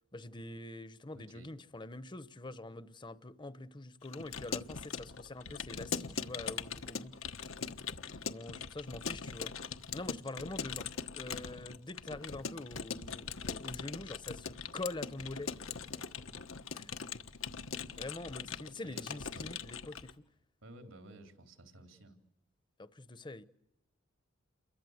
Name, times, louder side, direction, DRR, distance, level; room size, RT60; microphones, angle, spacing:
voice 1, 0.1-7.2 8.2-9.5 9.9-15.5 16.7-16.9 18.0-20.1 22.8-23.4, left 2 dB, 25° left, 0.9 m, -45 dB
voice 2, 1.1-1.5 18.6-19.5 20.6-22.2, right 1 dB, 80° right, 3.5 m, -54 dB
Keyboard (musical) / Computer keyboard, 4.0-20.1, left 6 dB, 85° left, 1.3 m, -41 dB
29.5 x 23.0 x 8.0 m
head